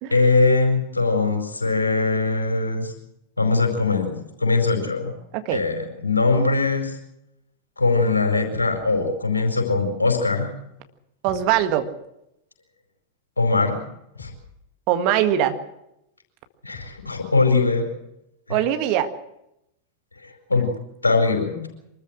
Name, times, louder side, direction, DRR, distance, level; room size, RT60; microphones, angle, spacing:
voice 1, 0.1-2.9 3.4-5.1 5.5-7.0 7.8-10.5 13.4-13.8 14.2-14.3 16.6-17.9 18.5-18.6 20.2-20.7 21.0-21.6, left 3 dB, 80° left, 3 dB, 4.8 m, -21 dB
sound 1, 8.5-8.9 11.3-11.6 14.2-14.6 16.7-17.1, left 4 dB, 65° left, 4.8 m, -42 dB
voice 2, 11.2-11.9 14.9-15.6 18.5-19.1, right 11 dB, 45° right, 8 dB, 1.7 m, -21 dB
24.5 x 14.0 x 7.7 m, 0.83 s
figure-of-eight pair, 90°, 0 cm